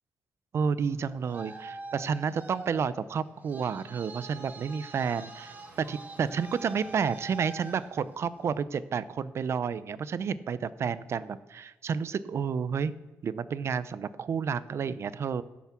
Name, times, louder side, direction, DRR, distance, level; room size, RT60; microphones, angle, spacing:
voice 1, 0.5-12.9 13.2-15.4, right 6 dB, 50° right, 16 dB, 0.5 m, -31 dB
Traffic noise roadway noise, 0.9-8.6, right 3 dB, 35° right, 1.8 m, -45 dB
10.0 x 7.2 x 6.1 m, 1.2 s
cardioid pair, 115°, 6 cm